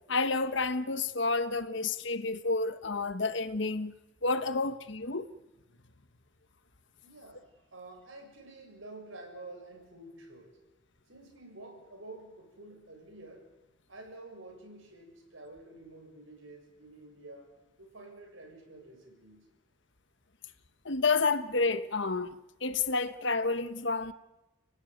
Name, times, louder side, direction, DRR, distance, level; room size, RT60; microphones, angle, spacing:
voice 1, 0.1-3.9 4.2-5.3 20.8-22.3 22.6-24.1, left 3 dB, 65° left, 1.3 m, -30 dB
voice 2, 7.0-10.6 11.1-13.5 13.9-17.5 17.8-19.5, right 2 dB, 80° right, 7.3 m, -49 dB
30.0 x 18.0 x 9.4 m
head